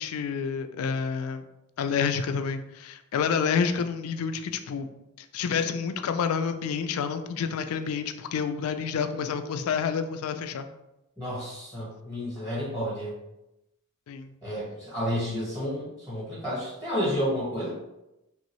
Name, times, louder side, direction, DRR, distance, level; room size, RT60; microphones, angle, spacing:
voice 1, 0.0-1.4 1.8-4.9 5.2-10.7 14.1-14.3, left 6 dB, 75° left, 9 dB, 0.3 m, -29 dB
voice 2, 11.2-13.1 14.4-17.7, equal, 15° right, -11 dB, 1.4 m, -31 dB
3.0 x 2.6 x 3.0 m, 0.91 s
head